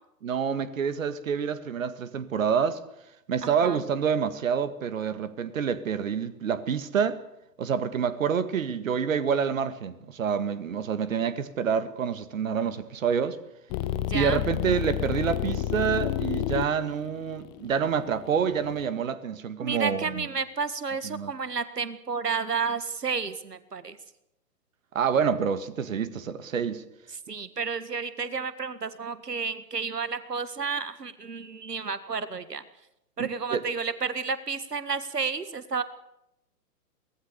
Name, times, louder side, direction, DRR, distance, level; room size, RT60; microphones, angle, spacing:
voice 1, 0.2-2.8 3.3-7.2 7.6-13.4 14.1-20.3 21.0-21.3 24.9-26.8 33.2-33.6, right 7 dB, 55° right, 1.9 m, -27 dB
voice 2, 3.4-3.8 14.1-14.4 19.6-24.0 27.1-32.6 33.2-35.8, right 5 dB, 75° right, 1.8 m, -31 dB
sound 1, 13.7-18.8, left 12 dB, 15° left, 0.8 m, -30 dB
24.5 x 18.5 x 6.7 m
figure-of-eight pair, 125°, 48 cm